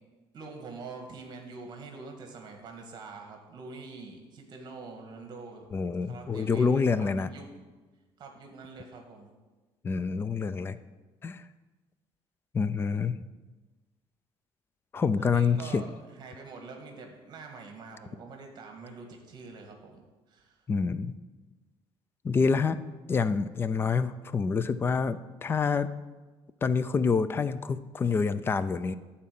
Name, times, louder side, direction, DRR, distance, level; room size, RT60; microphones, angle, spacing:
voice 1, 0.3-5.7 6.1-7.5 8.2-9.3 15.2-20.6, right 4 dB, 45° right, 3 dB, 1.6 m, -45 dB
voice 2, 5.7-7.3 9.8-10.8 11.2-11.4 12.5-13.2 14.9-15.8 20.7-21.2 22.2-22.8 23.1-25.9 26.6-28.9, left 5 dB, 20° left, 14 dB, 0.4 m, -27 dB
12.5 x 4.3 x 7.6 m, 1.2 s
cardioid pair, 155°, 11 cm